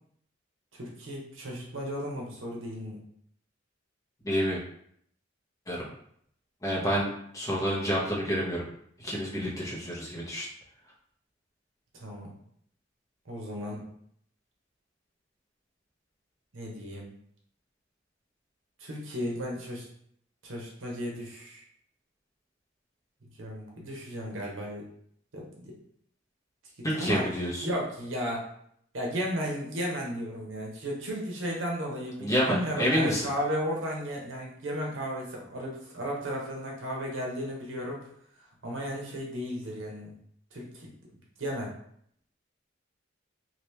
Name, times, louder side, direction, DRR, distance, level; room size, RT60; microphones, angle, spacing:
voice 1, 0.7-3.0 11.9-12.3 13.3-13.8 16.5-17.1 18.8-19.9 20.4-21.7 23.4-24.9 25.3-25.7 26.9-27.3 27.6-28.5 28.9-38.0 38.6-40.1 40.5-40.9 41.4-41.7, equal, 85° right, -2 dB, 0.9 m, -34 dB
voice 2, 4.2-4.6 5.7-5.8 6.6-8.6 9.0-10.5 26.8-27.7 32.2-33.3, equal, 15° left, -5 dB, 0.9 m, -28 dB
3.0 x 2.5 x 3.2 m, 0.68 s
head